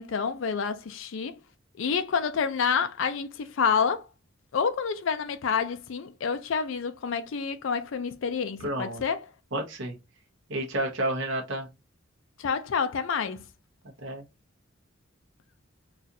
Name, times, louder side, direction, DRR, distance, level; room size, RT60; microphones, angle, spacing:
voice 1, 0.0-1.4 1.8-4.1 4.5-9.2 12.4-13.4, left 6 dB, 70° left, 0.4 m, -28 dB
voice 2, 8.6-9.0 9.5-9.9 10.5-11.7 14.0-14.2, right 1 dB, 65° right, 0.8 m, -30 dB
4.1 x 2.4 x 2.6 m
head